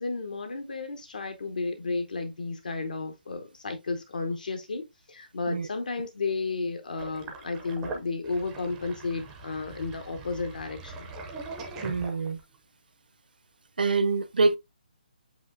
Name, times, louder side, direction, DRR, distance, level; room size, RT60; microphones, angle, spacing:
voice 1, 0.0-11.1, left 3 dB, 60° left, 0.8 m, -33 dB
Sink (filling or washing), 7.0-12.6, right 3 dB, 5° right, 0.4 m, -41 dB
voice 2, 11.8-12.4 13.8-14.6, right 3 dB, 70° right, 0.5 m, -25 dB
7.8 x 2.7 x 2.5 m
hypercardioid pair, 175°, 5 cm